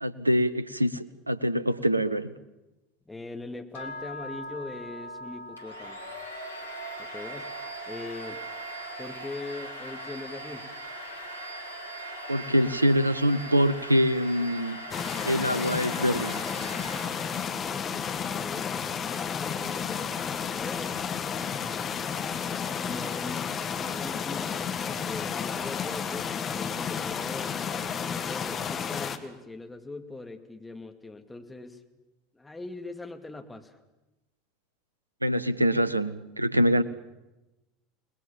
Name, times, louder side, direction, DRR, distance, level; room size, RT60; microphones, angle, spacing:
voice 1, 0.0-2.3 12.3-14.8 15.2-16.4 35.2-36.8, equal, 90° right, 16 dB, 0.8 m, -24 dB
voice 2, 3.1-6.0 7.0-7.5 7.9-8.4 9.0-10.7 18.3-18.7 19.2-20.0 20.6-20.9 22.8-23.4 23.8-31.8 32.3-33.8, left 2 dB, 10° left, 5 dB, 2.5 m, -41 dB
sound 1, 3.7-13.8, left 1 dB, 70° left, 2.9 m, -46 dB
Domestic sounds home sounds, 5.6-17.7, right 1 dB, 85° left, 3.1 m, -40 dB
sound 2, 14.9-29.2, left 7 dB, 35° left, 1.9 m, -32 dB
29.0 x 20.0 x 7.3 m, 1.0 s
figure-of-eight pair, 70°, 0 cm